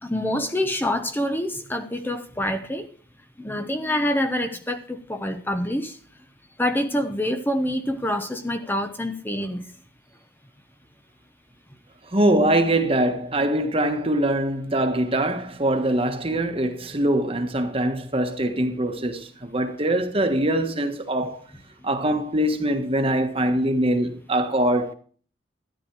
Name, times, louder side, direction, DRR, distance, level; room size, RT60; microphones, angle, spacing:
voice 1, 0.0-2.9 3.4-6.0 6.6-9.6, left 1 dB, 10° left, 0.9 m, -26 dB
voice 2, 12.1-21.4 21.8-24.9, right 1 dB, 30° right, 1.4 m, -23 dB
13.0 x 10.5 x 4.7 m
head